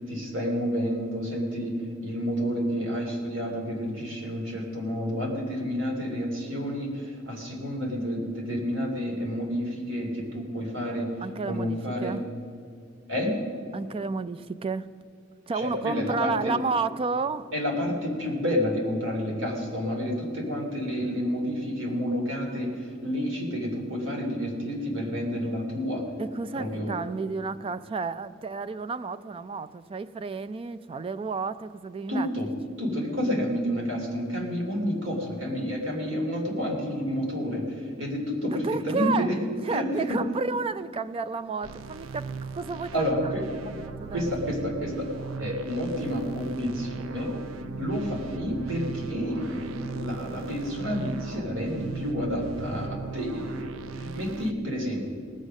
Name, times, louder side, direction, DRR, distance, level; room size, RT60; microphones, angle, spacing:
voice 1, 0.1-11.1 11.4-12.2 13.1-13.4 15.5-16.5 17.5-26.0 26.5-26.9 32.1-32.5 32.8-39.4 39.7-40.2 42.9-43.4 44.1-45.1 45.4-47.3 47.8-55.1, equal, 75° right, 0 dB, 2.8 m, -30 dB
voice 2, 11.2-12.2 13.7-14.9 15.5-17.5 26.2-32.3 38.5-39.3 39.6-43.1 43.8-44.3, right 4 dB, 30° right, 15 dB, 0.3 m, -31 dB
sound 1, 41.6-54.5, right 5 dB, 90° right, 0.5 m, -38 dB
18.5 x 6.6 x 6.3 m, 2.5 s
head